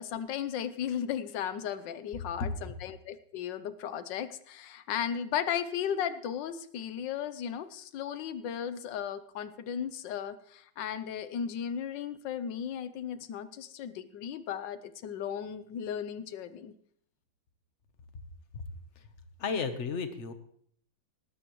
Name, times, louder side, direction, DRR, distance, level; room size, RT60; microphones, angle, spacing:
voice 1, 0.0-16.7, left 8 dB, 80° left, 13 dB, 1.5 m, -35 dB
voice 2, 19.4-20.3, left 5 dB, 45° left, 9 dB, 1.3 m, -33 dB
18.5 x 13.5 x 3.1 m, 0.64 s
omnidirectional pair, 2.0 m